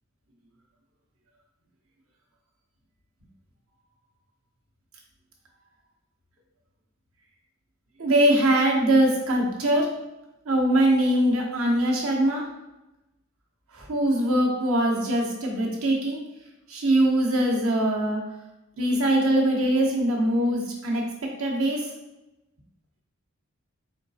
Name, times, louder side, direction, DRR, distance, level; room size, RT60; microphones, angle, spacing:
voice 1, 8.0-9.9 10.5-12.4 13.7-16.2 16.7-18.2 18.8-21.0 21.4-21.9, right 1 dB, 70° right, -1 dB, 1.0 m, -22 dB
4.3 x 3.9 x 2.7 m, 0.96 s
head